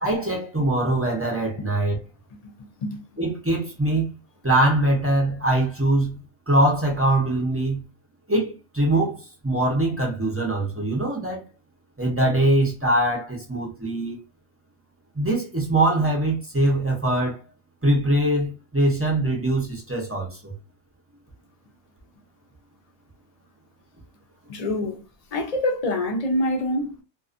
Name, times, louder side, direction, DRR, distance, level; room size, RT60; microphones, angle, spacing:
voice 1, 0.0-2.0 3.2-4.2 4.4-7.8 8.3-11.4 12.0-14.2 15.1-17.4 17.8-20.5, right 1 dB, 20° right, 0.4 m, -22 dB
voice 2, 24.5-25.0 25.3-27.0, left 1 dB, 50° left, 0.4 m, -25 dB
2.4 x 2.3 x 2.4 m
omnidirectional pair, 1.3 m